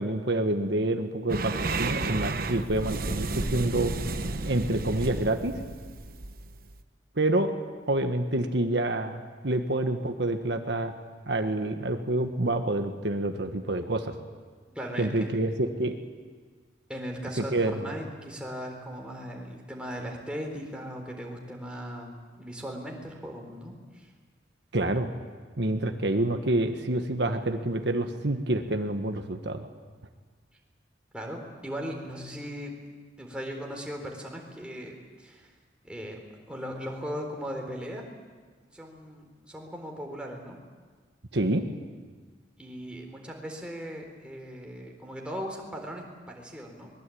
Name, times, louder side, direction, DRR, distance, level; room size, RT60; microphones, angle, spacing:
voice 1, 0.0-3.9 4.5-5.5 7.1-7.5 7.9-10.9 11.3-14.1 15.0-15.9 17.4-17.7 24.7-25.1 25.6-29.7 41.3-41.6, right 1 dB, 70° right, 5 dB, 1.5 m, -27 dB
sound 1, 1.3-6.8, right 2 dB, 55° right, 1.1 m, -32 dB
voice 2, 14.7-15.3 16.9-24.1 31.1-32.7 33.2-35.5 35.8-36.2 36.5-38.0 38.6-40.6 42.6-46.9, equal, 5° right, 0 dB, 4.0 m, -38 dB
24.0 x 21.0 x 8.6 m, 1.5 s
head